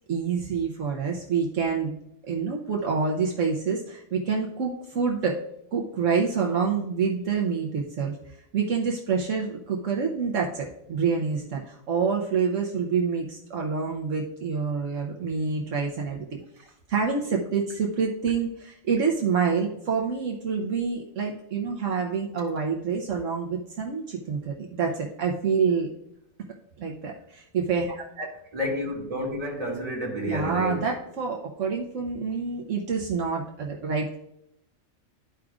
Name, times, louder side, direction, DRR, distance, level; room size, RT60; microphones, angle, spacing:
voice 1, 0.1-2.0 2.2-5.3 5.7-16.4 16.9-25.9 26.8-28.3 30.2-34.2, right 5 dB, 70° right, 1.2 m, -27 dB
voice 2, 28.5-30.9, left 1 dB, 30° right, 2.2 m, -30 dB
12.5 x 4.9 x 2.4 m
omnidirectional pair, 1.4 m